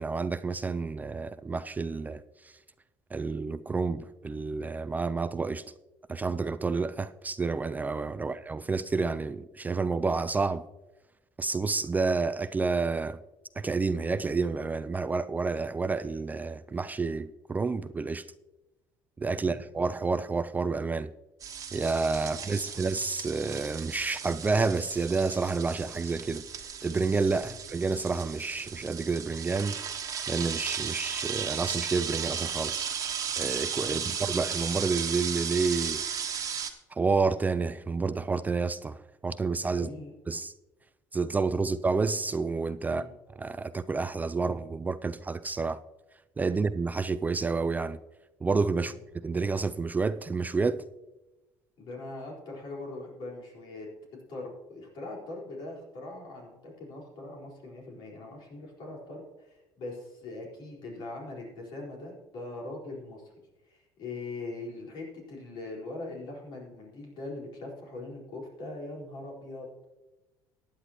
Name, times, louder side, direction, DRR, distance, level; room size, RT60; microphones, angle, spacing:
voice 1, 0.0-2.5 3.1-5.6 6.1-10.6 11.4-13.2 13.6-18.3 19.2-21.1 21.7-29.8 30.3-32.8 33.4-36.0 36.9-39.9 40.3-40.5 41.1-43.0 43.4-45.8 46.4-48.0 48.4-50.8, right 4 dB, 20° right, 0.3 m, -29 dB
sound 1, 21.4-36.7, right 7 dB, 40° right, 1.4 m, -35 dB
voice 2, 22.2-22.8 27.4-27.6 33.9-34.1 39.7-40.1 42.9-43.1 48.8-49.0 51.8-53.9 54.3-63.3 63.6-69.9, left 2 dB, 65° left, 4.4 m, -41 dB
15.5 x 9.9 x 3.0 m
supercardioid pair, 90°, 8 cm